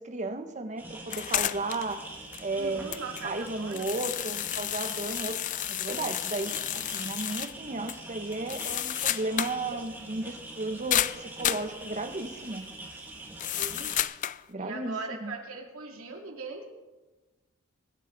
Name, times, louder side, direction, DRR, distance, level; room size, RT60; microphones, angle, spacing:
voice 1, 0.0-2.0 2.4-2.9 3.2-5.4 5.7-12.6 14.5-15.3, right 2 dB, 35° right, 8 dB, 1.1 m, -34 dB
sound 1, 0.8-14.0, right 2 dB, 10° right, 2.4 m, -44 dB
sound 2, 1.1-1.9 2.3-2.4 2.9-7.5 7.9-8.0 8.3-9.6 9.9-10.0 10.9-11.7 13.4-14.4, left 12 dB, 35° left, 0.3 m, -31 dB
voice 2, 2.5-3.9 13.6-13.9 14.6-16.6, right 4 dB, 80° right, 1 dB, 2.5 m, -40 dB
23.5 x 10.0 x 4.0 m, 1.1 s
head